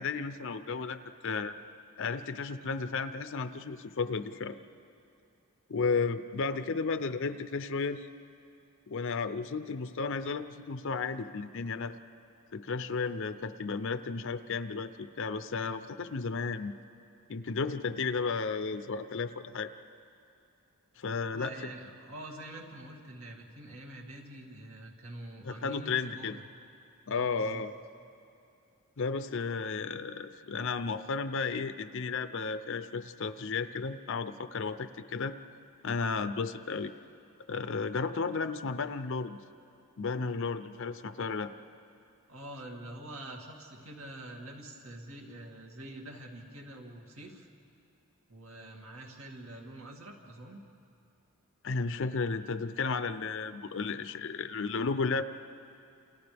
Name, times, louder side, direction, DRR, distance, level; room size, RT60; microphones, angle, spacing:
voice 1, 0.0-1.5 2.0-4.6 5.7-8.1 8.9-11.9 12.5-16.7 17.3-19.7 21.0-21.5 25.4-26.4 27.1-27.7 29.0-35.3 35.8-36.9 37.5-39.4 40.0-41.5 51.6-55.2, left 4 dB, 65° left, 11 dB, 0.6 m, -33 dB
voice 2, 21.3-26.4 27.1-27.6 42.3-47.5 48.3-50.6, right 1 dB, 70° right, 0 dB, 2.5 m, -46 dB
29.0 x 28.5 x 3.5 m, 2.6 s
head